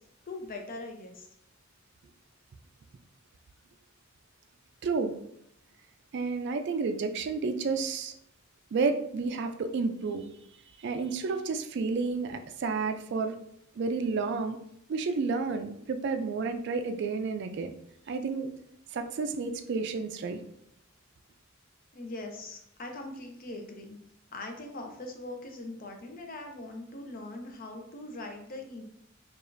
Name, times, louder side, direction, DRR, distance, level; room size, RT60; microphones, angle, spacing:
voice 1, 0.3-1.3 21.9-24.0 24.3-28.8, left 2 dB, 45° left, 3 dB, 0.6 m, -41 dB
voice 2, 4.8-5.1 6.1-8.1 8.7-10.2 10.8-13.3 13.8-14.6 14.9-17.7 18.1-18.5 18.9-20.4, right 4 dB, 60° right, 7 dB, 0.3 m, -31 dB
4.8 x 2.4 x 2.5 m, 0.72 s
head